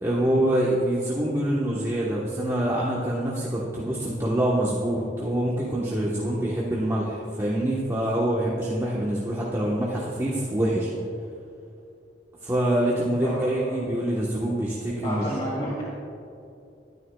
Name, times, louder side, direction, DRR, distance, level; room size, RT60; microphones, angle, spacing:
voice 1, 0.0-10.9 12.4-15.3, right 1 dB, 15° right, -6 dB, 1.1 m, -25 dB
voice 2, 13.2-13.8 15.0-15.8, equal, 35° left, -6 dB, 2.0 m, -30 dB
21.0 x 9.8 x 2.3 m, 2.6 s
head